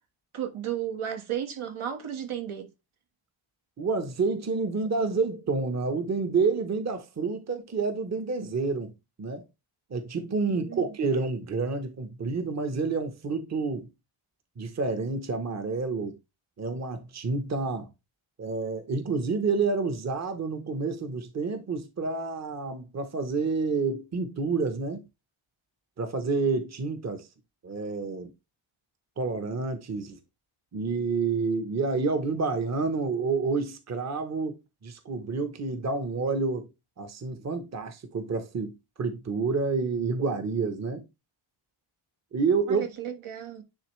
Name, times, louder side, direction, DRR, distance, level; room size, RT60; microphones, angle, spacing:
voice 1, 0.3-2.7 10.5-10.9 42.7-43.6, right 10 dB, 75° right, 1.5 m, -34 dB
voice 2, 3.8-8.9 9.2-9.4 9.9-13.9 14.6-16.2 16.6-17.9 18.4-25.0 26.0-27.3 27.6-28.3 29.2-30.2 30.7-34.5 34.8-36.7 37.0-41.0 42.3-42.9, right 4 dB, 35° right, 0.9 m, -29 dB
10.0 x 3.6 x 3.1 m
wide cardioid pair, 135°, 49 cm